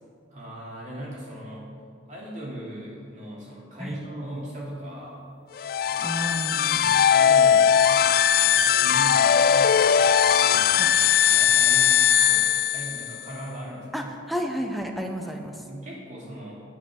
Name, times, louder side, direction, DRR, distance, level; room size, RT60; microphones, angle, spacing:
voice 1, 0.3-1.7 2.1-5.2 5.8-6.2 6.7-7.9 8.4-9.8 10.4-11.0 11.3-11.9 12.3-14.1 15.2-16.6, equal, 40° right, -5 dB, 3.2 m, -39 dB
sound 1, 5.6-13.2, left 8 dB, 50° left, 0.3 m, -19 dB
voice 2, 6.0-6.9 10.8-11.0 13.9-15.5, equal, ahead, 3 dB, 0.8 m, -31 dB
10.0 x 9.5 x 6.4 m, 2.3 s
head